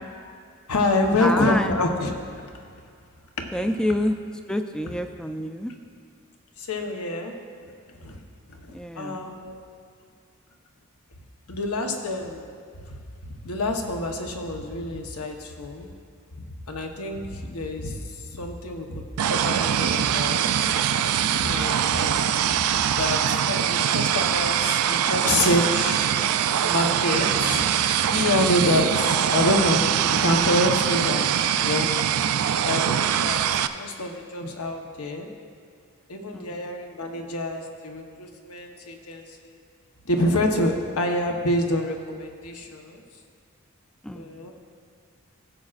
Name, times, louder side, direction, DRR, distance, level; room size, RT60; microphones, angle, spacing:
voice 1, 0.7-2.5 3.6-3.8 6.6-7.3 7.6-8.2 8.5-9.5 11.5-12.5 13.2-15.9 16.7-20.5 21.4-22.3 22.7-26.1 26.6-27.7 28.1-32.0 32.6-35.3 36.1-39.6 40.0-43.0 44.1-44.5, left 1 dB, 80° left, 3 dB, 1.0 m, -27 dB
voice 2, 1.2-1.8 3.5-4.1 4.5-5.7 8.7-9.2 28.6-28.7 36.3-36.5 44.0-44.3, left 1 dB, 5° left, 6 dB, 0.3 m, -27 dB
sound 1, 19.2-33.7, right 9 dB, 80° right, 0.4 m, -23 dB
16.0 x 7.5 x 2.4 m, 2.3 s
head